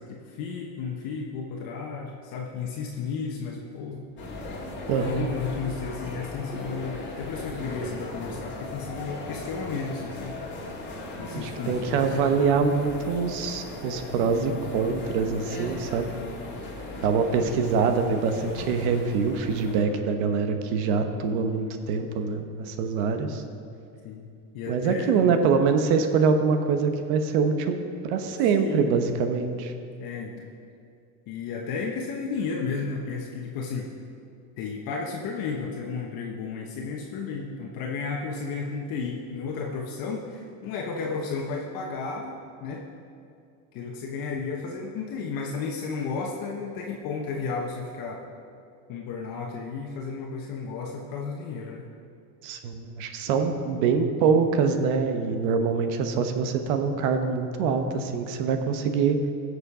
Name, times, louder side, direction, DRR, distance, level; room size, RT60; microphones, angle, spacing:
voice 1, 0.0-4.0 5.0-10.4 11.2-12.2 17.0-17.3 21.5-21.8 24.0-24.3 24.5-25.2 28.6-28.9 30.0-30.5 31.3-33.9 34.6-42.9 43.7-48.2 48.9-51.9, left 5 dB, 50° left, 0 dB, 1.2 m, -33 dB
sound 1, 4.2-19.8, left 2 dB, 25° left, 2.3 m, -37 dB
voice 2, 4.9-5.3 11.3-16.1 17.0-23.4 24.7-27.8 28.0-29.7 52.4-59.2, right 5 dB, 70° right, 7 dB, 1.2 m, -24 dB
16.0 x 6.7 x 4.9 m, 2.5 s
supercardioid pair, 130°, 44 cm